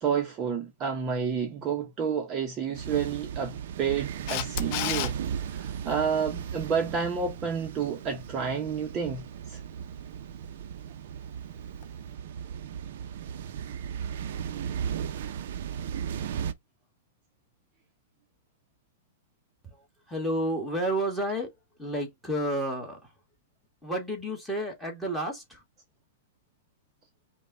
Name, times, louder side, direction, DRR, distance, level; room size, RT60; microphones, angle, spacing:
voice 1, 0.0-5.2 5.4-9.6, right 6 dB, 25° right, 0.8 m, -30 dB
sound 1, 2.7-16.5, right 8 dB, 60° right, 0.6 m, -36 dB
Camera, 4.3-5.1 11.8-11.9, left 12 dB, 40° left, 0.6 m, -30 dB
voice 2, 19.6-21.5 21.8-23.1 23.8-25.6, right 1 dB, ahead, 1.4 m, -31 dB
5.2 x 2.3 x 3.8 m
supercardioid pair, 160°, 0 cm